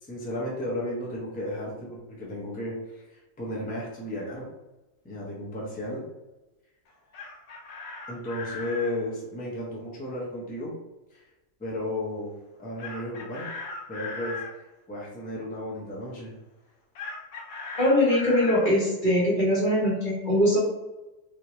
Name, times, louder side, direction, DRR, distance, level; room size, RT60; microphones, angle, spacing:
voice 1, 0.0-4.5 5.0-6.0 8.1-10.7 11.1-11.2 11.6-12.3 12.6-13.5 13.9-14.4 14.9-16.3, left 1 dB, 10° left, -5 dB, 0.5 m, -34 dB
Chicken rooster, 6.9-9.0 12.8-14.5 16.9-18.7, left 3 dB, 65° left, 0.9 m, -38 dB
voice 2, 17.8-20.6, left 1 dB, 35° left, -6 dB, 1.2 m, -22 dB
3.4 x 2.7 x 3.0 m, 1.0 s
omnidirectional pair, 1.7 m